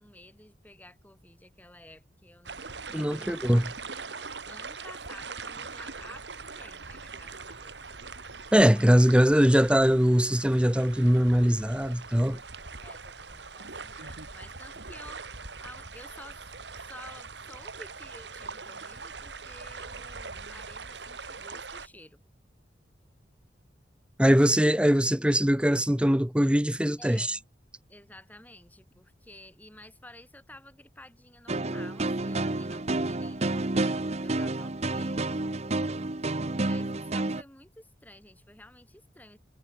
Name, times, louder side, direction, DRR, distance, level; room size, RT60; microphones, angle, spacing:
voice 1, 0.0-3.8 4.1-7.8 12.8-15.3 15.6-16.5 16.8-22.2 27.0-27.5 27.9-35.3 36.5-39.4, left 1 dB, 10° left, 7.2 m, -52 dB
sound 1, 2.5-21.9, right 4 dB, 75° right, 3.3 m, -42 dB
voice 2, 2.9-3.7 8.5-12.4 24.2-27.3, equal, 5° right, 1.1 m, -22 dB
sound 2, 31.5-37.4, right 2 dB, 40° right, 1.0 m, -29 dB
head